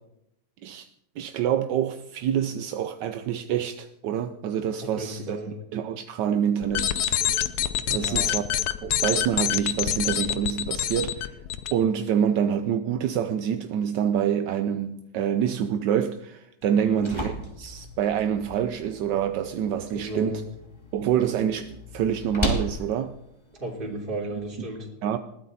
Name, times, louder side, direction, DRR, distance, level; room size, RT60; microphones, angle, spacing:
voice 1, 1.2-5.4 5.7-6.9 7.9-8.5 8.8-11.4 11.7-20.4 20.9-23.1 25.0-25.2, right 9 dB, 70° right, 1.1 m, -26 dB
voice 2, 4.8-5.5 7.9-8.3 16.7-17.1 19.9-20.4 23.6-24.9, right 1 dB, 25° right, 3.5 m, -34 dB
sound 1, 6.6-11.7, left 11 dB, 65° left, 1.0 m, -26 dB
sound 2, 16.6-24.6, equal, 10° left, 2.2 m, -36 dB
20.5 x 15.0 x 4.1 m
omnidirectional pair, 2.4 m